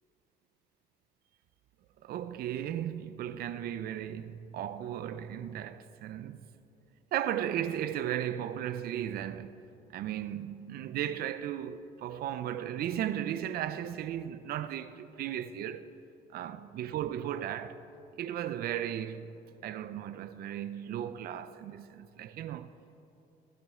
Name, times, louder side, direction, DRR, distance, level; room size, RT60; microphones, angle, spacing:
voice 1, 2.0-6.4 7.1-9.6 9.9-15.9 16.3-17.8 18.1-19.3 19.6-22.7, right 10 dB, 65° right, 0.6 m, -36 dB
15.5 x 13.5 x 5.0 m
cardioid pair, 110°, 17 cm